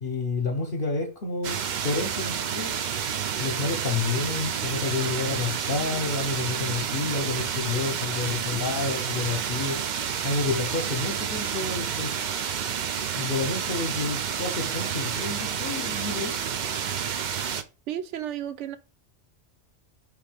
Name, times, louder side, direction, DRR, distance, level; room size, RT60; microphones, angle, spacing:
voice 1, 0.0-2.8 3.4-9.8 10.2-12.1 13.1-16.4, left 3 dB, 50° left, 0.9 m, -29 dB
sound 1, 1.4-17.6, right 8 dB, 55° right, 0.5 m, -30 dB
voice 2, 17.9-18.8, right 10 dB, 85° right, 0.9 m, -32 dB
4.5 x 3.4 x 3.4 m
omnidirectional pair, 1.2 m